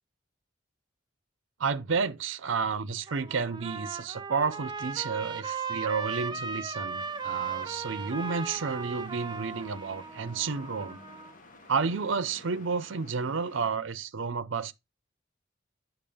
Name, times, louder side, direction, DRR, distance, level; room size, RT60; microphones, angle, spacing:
voice 1, 1.6-11.0 11.7-14.7, right 5 dB, 75° right, 0.6 m, -31 dB
Trumpet, 2.9-11.3, right 5 dB, 20° right, 0.4 m, -37 dB
sound 1, 6.9-13.7, left 2 dB, 40° left, 0.9 m, -53 dB
8.6 x 5.8 x 3.5 m
head